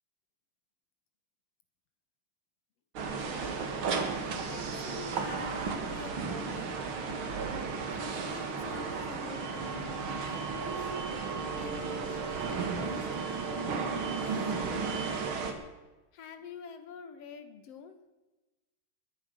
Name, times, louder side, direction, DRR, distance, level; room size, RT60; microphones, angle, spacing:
sound 1, 3.0-15.5, right 5 dB, 50° right, 2.2 m, -34 dB
voice 1, 3.2-3.6 4.2-6.8 8.0-10.9 11.6-13.9 14.5-14.9 16.1-18.0, left 6 dB, 60° left, 9 dB, 2.1 m, -47 dB
21.0 x 10.5 x 6.3 m, 1.1 s
omnidirectional pair, 3.4 m